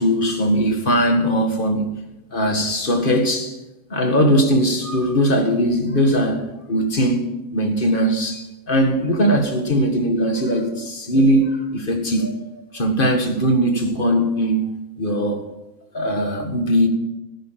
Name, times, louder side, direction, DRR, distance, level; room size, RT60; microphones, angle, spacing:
voice 1, 0.0-1.9 2.3-3.6 3.9-12.4 12.7-15.5 15.9-16.9, equal, 25° left, 1.7 m, -20 dB
15.0 x 10.0 x 5.9 m
omnidirectional pair, 2.3 m